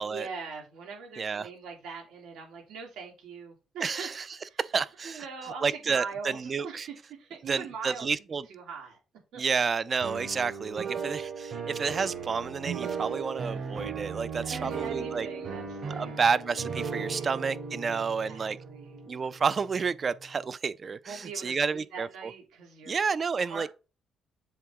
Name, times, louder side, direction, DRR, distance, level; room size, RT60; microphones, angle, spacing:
voice 1, 0.0-4.6 5.0-6.4 6.6-8.1 8.5-9.0 9.3-9.4 14.4-16.1 17.1-17.3 17.8-19.1 21.1-23.0 23.3-23.7, right 5 dB, 90° right, 2.7 m, -42 dB
voice 2, 1.2-1.5 3.8-4.3 4.6-5.2 5.6-6.9 7.5-8.5 9.4-15.3 15.9-18.6 19.1-22.3 22.9-23.7, right 5 dB, 40° right, 0.4 m, -30 dB
sound 1, 10.0-19.9, right 6 dB, 60° right, 3.6 m, -36 dB
7.5 x 3.8 x 3.6 m
cardioid pair, 90°, 0 cm